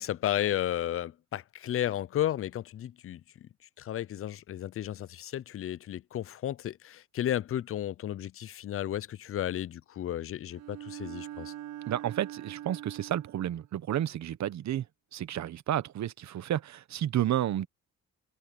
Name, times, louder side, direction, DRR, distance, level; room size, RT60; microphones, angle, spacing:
voice 1, 0.0-3.5 3.8-11.5, left 11 dB, 45° left, 0.5 m, -33 dB
Bowed string instrument, 10.5-13.6, right 13 dB, 80° right, 6.2 m, -43 dB
voice 2, 11.9-14.8 15.1-17.7, right 11 dB, 65° right, 1.2 m, -31 dB
cardioid pair, 90°, 30 cm